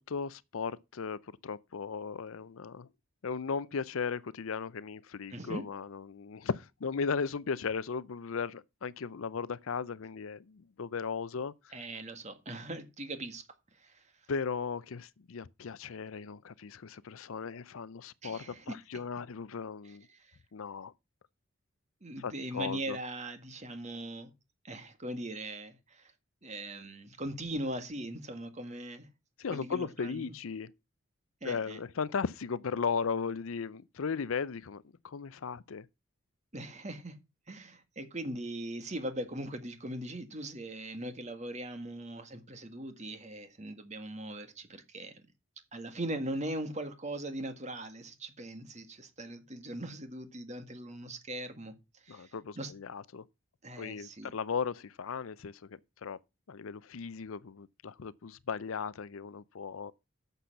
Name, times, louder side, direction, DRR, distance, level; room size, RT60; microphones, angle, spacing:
voice 1, 0.0-2.9 3.2-11.5 14.3-20.1 20.5-20.9 22.2-23.0 29.4-30.7 31.4-35.9 52.1-53.2 53.8-56.2 56.5-59.9, left 5 dB, 80° left, 0.5 m, -36 dB
voice 2, 5.3-5.6 11.7-13.4 13.8-14.0 18.2-18.8 19.8-20.4 22.0-24.3 24.6-26.1 26.4-29.1 29.5-30.3 31.4-31.8 36.5-37.2 37.5-45.2 45.7-51.7 52.0-52.7 53.6-54.3, right 1 dB, 35° right, 1.8 m, -40 dB
10.0 x 6.9 x 5.7 m
head